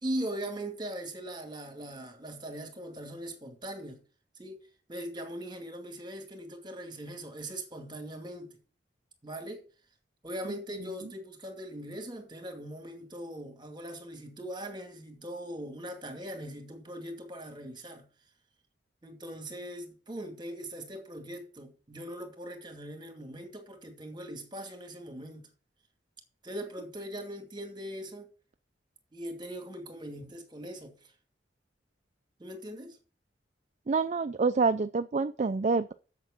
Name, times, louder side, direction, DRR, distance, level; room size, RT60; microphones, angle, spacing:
voice 1, 0.0-4.0 4.4-4.6 4.9-8.6 9.2-9.6 10.2-18.1 19.0-25.5 26.4-28.3 29.1-31.0 32.4-33.0, right 1 dB, 25° right, 2.4 m, -40 dB
voice 2, 33.9-35.9, right 4 dB, 40° right, 0.4 m, -27 dB
8.0 x 7.5 x 7.1 m
head